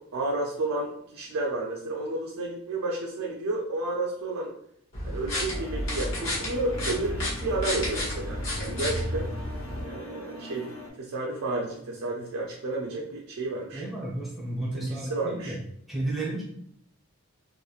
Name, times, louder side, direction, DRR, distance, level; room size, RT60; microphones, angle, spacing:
voice 1, 0.0-4.5 5.0-9.3 9.8-10.7 11.0-13.8 14.7-15.5, right 2 dB, 70° right, -1 dB, 0.4 m, -31 dB
sound 1, 4.9-9.8, left 1 dB, 65° left, 1.0 m, -31 dB
sound 2, 5.5-10.9, left 1 dB, 85° left, 0.6 m, -43 dB
voice 2, 13.7-15.6 15.9-16.4, right 2 dB, ahead, -5 dB, 0.5 m, -32 dB
2.9 x 2.1 x 2.3 m, 0.70 s
head